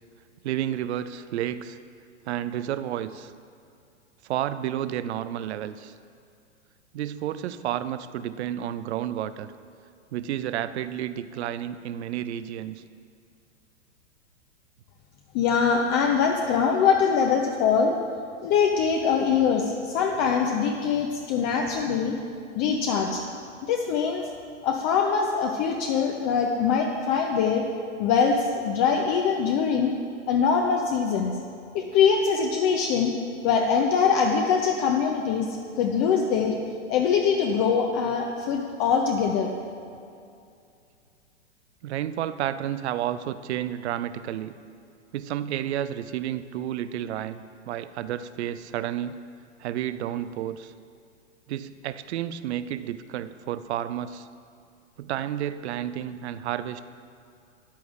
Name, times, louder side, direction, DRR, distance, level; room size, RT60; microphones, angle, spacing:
voice 1, 0.4-1.8 2.3-3.3 4.2-5.9 6.9-9.5 10.1-12.8 41.8-44.6 45.1-49.2 49.6-50.7 51.5-54.3 55.0-56.8, right 11 dB, 60° right, 13 dB, 0.5 m, -31 dB
voice 2, 15.3-18.0 18.4-22.2 22.5-23.2 23.7-24.3 24.6-27.6 28.0-29.9 30.3-31.4 31.7-33.2 33.4-35.5 35.8-36.5 36.9-39.5, left 6 dB, 35° left, 2 dB, 0.7 m, -23 dB
13.0 x 9.2 x 2.5 m, 2.4 s
hypercardioid pair, 105°, 37 cm